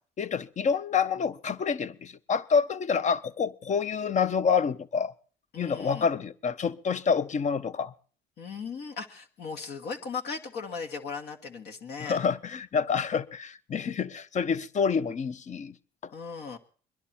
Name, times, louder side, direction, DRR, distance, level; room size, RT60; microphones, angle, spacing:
voice 1, 0.2-5.1 5.6-7.9 12.0-15.7, left 6 dB, 40° left, 0.8 m, -27 dB
voice 2, 5.5-6.1 8.4-12.2 16.1-16.6, left 5 dB, 60° left, 1.5 m, -37 dB
21.5 x 11.0 x 4.3 m
supercardioid pair, 80°, 19 cm